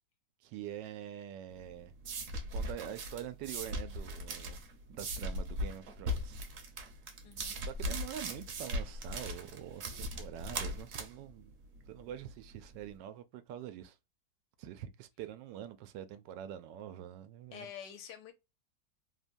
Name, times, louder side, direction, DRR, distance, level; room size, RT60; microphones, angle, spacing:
voice 1, 0.4-1.9 2.4-4.6 5.0-6.4 6.8-6.9 7.7-11.5 11.9-14.0 14.6-17.7, right 10 dB, 90° right, 1.3 m, -45 dB
sound 1, 1.5-12.9, equal, 60° right, 0.9 m, -39 dB
voice 2, 7.2-7.6 17.5-18.3, left 8 dB, 80° left, 1.4 m, -47 dB
3.3 x 2.2 x 2.5 m
omnidirectional pair, 1.9 m